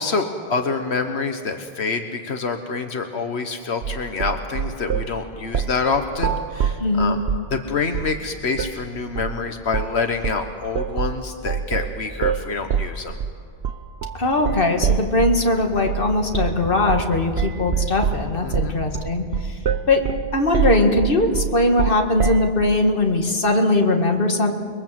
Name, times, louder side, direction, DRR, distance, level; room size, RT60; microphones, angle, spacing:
voice 1, 0.0-7.2 7.5-13.2 18.4-18.8, left 4 dB, 85° left, 5 dB, 1.5 m, -26 dB
sound 1, 3.8-5.1 5.5-5.8 6.1-7.5 7.9-8.2 8.6-8.8 9.2-9.4 9.7-10.0 10.2-15.5 15.9-16.1 16.3-16.6 16.9-17.1 17.4-22.5, right 7 dB, 80° right, 1.1 m, -25 dB
voice 2, 6.8-7.2 14.1-19.6 19.9-20.1 20.3-24.5, left 2 dB, 60° left, 3 dB, 2.2 m, -20 dB
sound 2, 13.9-21.0, equal, 30° left, 2.9 m, -37 dB
29.0 x 22.5 x 7.6 m, 2.2 s
omnidirectional pair, 1.1 m